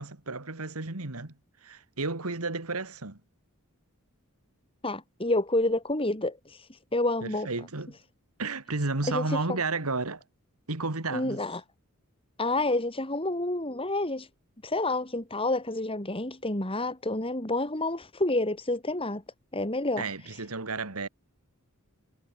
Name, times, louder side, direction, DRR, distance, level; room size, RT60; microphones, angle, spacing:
voice 1, 0.0-1.3 1.6-3.2 7.2-8.0 8.4-10.2 10.7-11.4 20.0-21.1, right 3 dB, 90° right, 2.2 m, -32 dB
voice 2, 4.8-7.5 9.1-9.6 11.1-11.6 12.4-14.3 14.6-19.2 19.5-20.4, left 2 dB, 25° left, 4.4 m, -29 dB
head